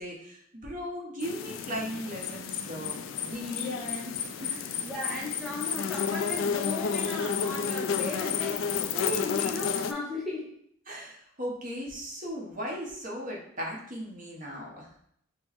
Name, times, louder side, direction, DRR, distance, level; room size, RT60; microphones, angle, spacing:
voice 1, 0.0-4.1 4.4-4.8 10.9-14.9, equal, 40° right, -2 dB, 0.9 m, -37 dB
sound 1, 1.2-9.9, left 7 dB, 85° left, 0.3 m, -31 dB
voice 2, 3.6-3.9 4.8-8.6 8.9-10.5, left 2 dB, ahead, -6 dB, 0.6 m, -36 dB
6.0 x 2.0 x 3.0 m, 0.70 s
head